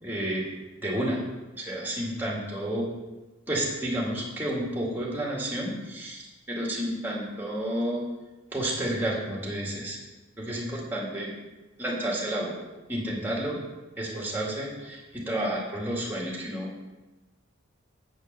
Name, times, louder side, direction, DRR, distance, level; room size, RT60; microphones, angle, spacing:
voice 1, 0.0-0.5 0.8-1.2 1.6-2.9 3.5-8.0 8.5-10.0 10.4-11.3 11.8-12.5 12.9-13.6 14.0-16.7, right 1 dB, 10° right, -3 dB, 2.2 m, -30 dB
8.3 x 5.2 x 6.6 m, 1.1 s
head